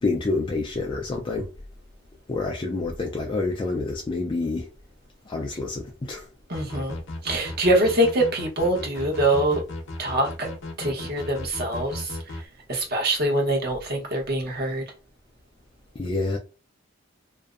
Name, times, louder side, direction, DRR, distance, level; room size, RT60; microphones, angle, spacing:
voice 1, 0.0-1.5 2.3-4.7 5.3-6.3 16.0-16.4, left 3 dB, 25° left, 0.3 m, -28 dB
sound 1, 6.5-12.4, left 2 dB, 70° left, 0.7 m, -36 dB
voice 2, 6.5-7.0 7.2-9.6 10.0-10.5 10.8-14.8, right 1 dB, 50° right, 0.8 m, -24 dB
2.5 x 2.1 x 2.4 m
head